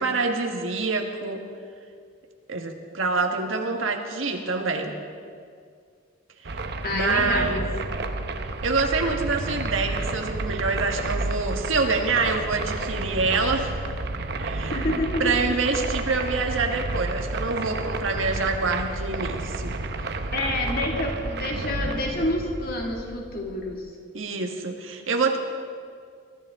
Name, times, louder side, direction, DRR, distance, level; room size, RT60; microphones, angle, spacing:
voice 1, 0.0-1.5 2.5-5.0 6.4-6.6 6.9-7.7 8.6-13.8 14.4-14.9 15.2-19.8 24.1-25.4, right 3 dB, 85° right, 3 dB, 1.5 m, -26 dB
sound 1, 6.4-23.8, right 2 dB, 55° right, 0.8 m, -31 dB
voice 2, 6.8-7.6 14.7-15.5 20.3-23.9, left 1 dB, 50° left, 0 dB, 2.2 m, -28 dB
23.0 x 13.5 x 3.7 m, 2.2 s
head